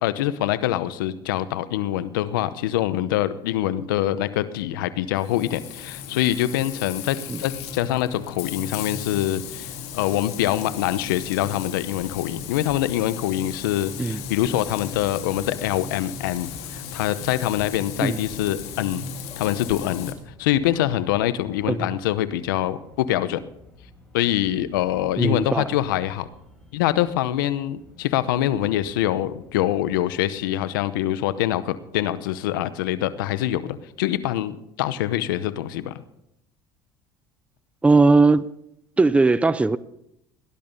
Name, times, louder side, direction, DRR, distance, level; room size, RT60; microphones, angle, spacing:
voice 1, 0.0-19.0 19.4-20.1 20.4-23.4 24.1-26.3 26.7-35.9, left 13 dB, 90° left, 14 dB, 0.8 m, -24 dB
Frying (food), 5.2-20.1, left 7 dB, 70° left, 2.4 m, -36 dB
sound 1, 14.4-30.4, left 1 dB, 5° left, 6.4 m, -50 dB
voice 2, 25.2-25.7 37.8-38.5 39.0-39.8, right 3 dB, 10° right, 17 dB, 0.6 m, -18 dB
18.0 x 11.0 x 5.4 m, 0.81 s
supercardioid pair, 85°, 11 cm